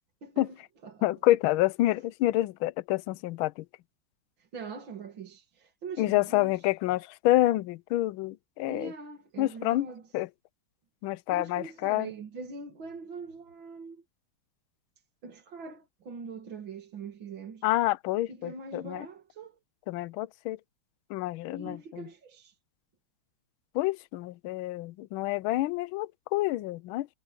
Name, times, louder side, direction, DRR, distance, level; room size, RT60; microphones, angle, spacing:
voice 1, 0.2-0.6 0.8-1.1 4.4-6.6 8.7-10.0 11.3-14.0 15.2-17.6 18.3-19.6 21.5-22.6, right 4 dB, 70° right, 2.8 m, -42 dB
voice 2, 1.0-3.6 6.0-8.9 9.4-9.9 10.1-10.3 11.0-12.1 17.6-19.1 19.9-20.6 21.1-22.1 23.7-27.1, left 16 dB, 80° left, 1.4 m, -28 dB
omnidirectional pair, 2.3 m